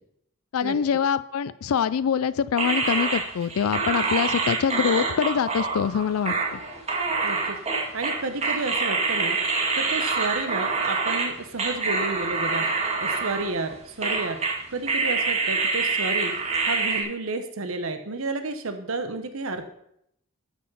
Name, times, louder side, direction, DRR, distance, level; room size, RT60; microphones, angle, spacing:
voice 1, 0.5-6.6, left 7 dB, 80° left, 15 dB, 0.4 m, -24 dB
sound 1, 2.6-11.3 11.6-13.7 14.0-14.6 14.9-17.0, right 4 dB, 30° right, 2.1 m, -26 dB
voice 2, 7.2-7.6 7.9-9.4 9.7-12.7 13.0-14.4 14.7-16.4 16.6-19.7, right 3 dB, 65° right, 8 dB, 0.9 m, -31 dB
13.0 x 6.4 x 5.5 m, 0.75 s
head